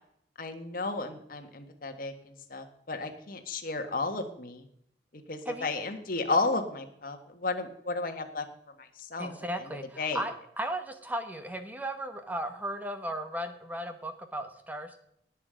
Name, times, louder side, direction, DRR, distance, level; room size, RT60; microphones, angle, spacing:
voice 1, 0.4-4.6 5.3-8.4 8.8-9.3 10.0-10.2, left 3 dB, 50° left, 6 dB, 1.5 m, -33 dB
voice 2, 9.2-15.0, right 1 dB, 10° right, 7 dB, 1.1 m, -36 dB
18.5 x 7.3 x 5.1 m, 0.73 s
head